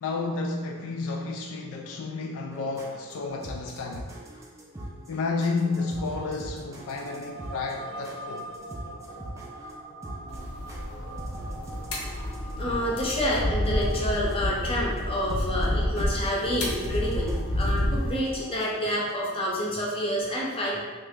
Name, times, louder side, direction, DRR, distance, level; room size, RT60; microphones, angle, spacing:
voice 1, 0.0-4.1 5.1-8.5, left 3 dB, 70° left, 0.3 m, -31 dB
sound 1, 2.5-19.1, right 1 dB, 15° right, 0.4 m, -42 dB
sound 2, 5.7-19.7, right 2 dB, 70° right, 0.6 m, -44 dB
sound 3, 10.3-18.2, left 1 dB, 90° left, 0.7 m, -29 dB
voice 2, 11.9-20.8, equal, 25° left, 0.7 m, -29 dB
3.1 x 2.8 x 3.5 m
head